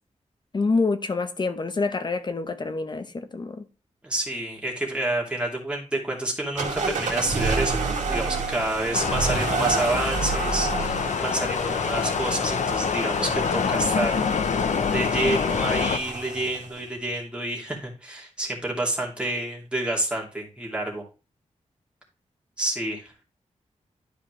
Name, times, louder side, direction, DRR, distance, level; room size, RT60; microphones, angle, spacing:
voice 1, 0.5-3.7, left 3 dB, 40° left, 0.9 m, -26 dB
voice 2, 4.0-14.2 14.9-21.0 22.6-23.1, right 1 dB, 10° right, 2.7 m, -29 dB
sound 1, 6.6-16.8, right 4 dB, 85° right, 2.3 m, -30 dB
sound 2, 8.9-16.0, left 6 dB, 75° left, 0.7 m, -26 dB
11.5 x 5.0 x 3.2 m
wide cardioid pair, 140°, 12 cm